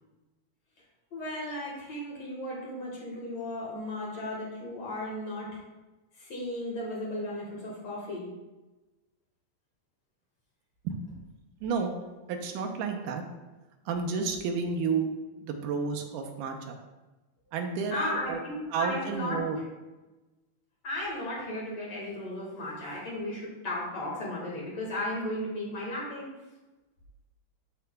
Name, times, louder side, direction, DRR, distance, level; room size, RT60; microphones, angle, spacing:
voice 1, 1.1-5.5 6.2-8.2 17.9-19.4 20.8-26.3, left 1 dB, 60° left, -4 dB, 2.4 m, -35 dB
voice 2, 11.6-11.9 12.3-13.2 13.9-15.1 15.4-16.8 17.5-18.4 18.7-19.6, right 5 dB, 85° right, 4 dB, 2.3 m, -31 dB
12.0 x 4.7 x 2.3 m, 1.1 s
omnidirectional pair, 3.6 m